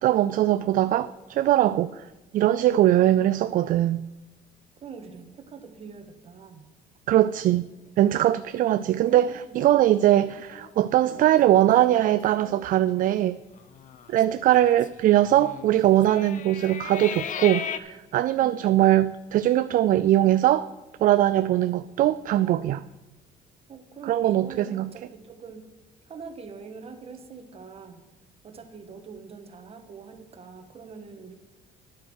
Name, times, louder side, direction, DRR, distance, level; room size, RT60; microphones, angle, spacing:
voice 1, 0.0-2.1 2.3-4.0 7.1-7.7 8.0-13.4 14.1-20.7 21.0-22.8 24.1-24.9, right 13 dB, 55° right, 14 dB, 0.4 m, -21 dB
voice 2, 4.8-6.7 8.6-9.6 18.4-18.7 23.7-25.6 26.0-28.0 28.4-31.3, right 5 dB, 35° right, 7 dB, 1.5 m, -44 dB
sound 1, 9.1-10.7 11.1-11.3 11.5-11.9 12.3-12.7 13.5-17.8, left 8 dB, 50° left, 0.8 m, -37 dB
11.0 x 7.7 x 6.4 m, 1.1 s
cardioid pair, 135°, 17 cm